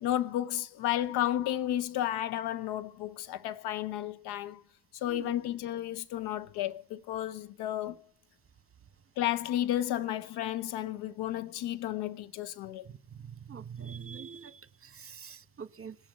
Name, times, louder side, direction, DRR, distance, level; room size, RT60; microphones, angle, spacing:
voice 1, 0.0-4.6 4.9-8.0 9.2-12.9, left 12 dB, 85° left, 1.0 m, -32 dB
voice 2, 13.5-14.6 14.9-15.9, right 7 dB, 35° right, 1.4 m, -44 dB
19.0 x 7.2 x 8.8 m
supercardioid pair, 60°, 38 cm